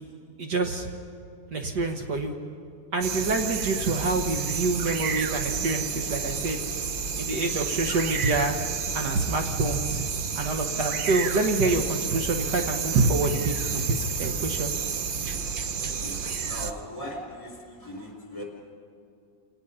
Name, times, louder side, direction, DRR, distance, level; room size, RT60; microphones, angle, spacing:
voice 1, 0.4-0.9 1.5-2.3 2.9-6.6 7.2-8.6 8.9-10.0 10.4-14.7, right 3 dB, 65° right, 4 dB, 1.7 m, -26 dB
sound 1, 3.0-16.7, right 6 dB, 90° right, 0.4 m, -31 dB
voice 2, 15.8-16.2 16.4-18.4, equal, 15° left, 0 dB, 4.0 m, -39 dB
27.5 x 18.5 x 5.6 m, 2.4 s
omnidirectional pair, 2.0 m